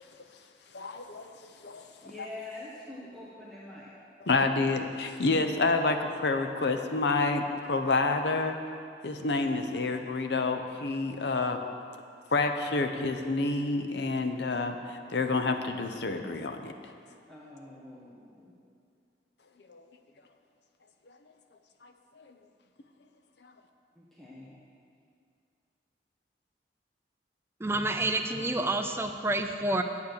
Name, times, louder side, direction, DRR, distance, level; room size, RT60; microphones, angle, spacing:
voice 1, 0.7-1.8 4.2-8.6 9.0-11.6 12.3-16.7 19.7-19.8 21.8-22.3, left 3 dB, 75° left, 6 dB, 0.7 m, -29 dB
voice 2, 2.0-3.9 17.3-18.5 23.9-24.6, left 2 dB, ahead, -7 dB, 1.2 m, -45 dB
voice 3, 27.6-29.8, right 2 dB, 15° right, 6 dB, 0.5 m, -29 dB
8.5 x 8.3 x 6.6 m, 2.4 s
head